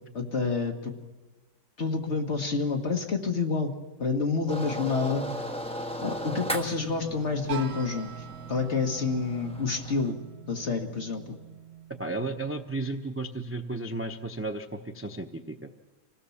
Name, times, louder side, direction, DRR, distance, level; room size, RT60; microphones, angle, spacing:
voice 1, 0.1-0.9 1.8-3.7 4.0-5.2 6.0-8.1 8.5-10.2 10.5-11.4, left 4 dB, 40° left, 3 dB, 1.9 m, -28 dB
sound 1, 4.5-10.1, equal, 5° left, 1.3 m, -37 dB
sound 2, 7.5-13.3, right 10 dB, 45° right, 1.2 m, -44 dB
voice 2, 12.0-15.7, right 2 dB, 20° right, 5 dB, 0.4 m, -34 dB
25.5 x 17.0 x 7.2 m, 1.3 s
omnidirectional pair, 1.8 m